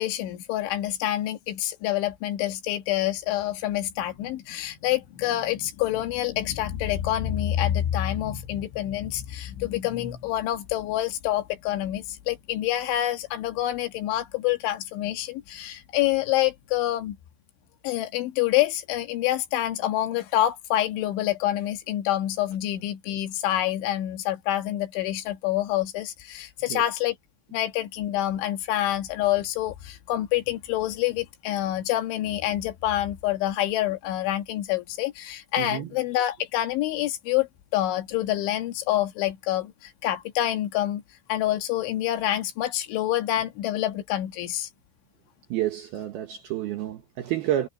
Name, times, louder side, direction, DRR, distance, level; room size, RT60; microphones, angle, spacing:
voice 1, 0.0-17.2 17.8-27.2 27.5-41.0 41.3-44.7, left 13 dB, 70° left, 3.6 m, -27 dB
voice 2, 35.6-35.9 45.5-47.7, right 12 dB, 75° right, 2.4 m, -29 dB
omnidirectional pair, 5.8 m